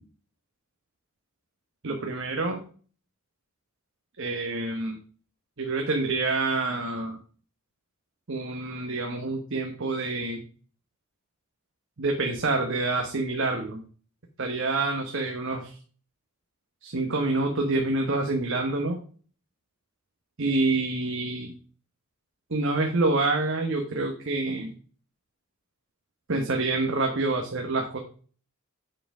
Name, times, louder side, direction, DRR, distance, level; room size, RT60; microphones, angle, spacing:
voice 1, 1.8-2.6 4.2-5.0 5.6-7.2 8.3-10.4 12.0-13.8 14.4-15.7 16.8-19.0 20.4-21.5 22.5-24.7 26.3-28.0, right 2 dB, 60° right, 3 dB, 1.2 m, -27 dB
7.8 x 5.7 x 5.0 m, 0.42 s
head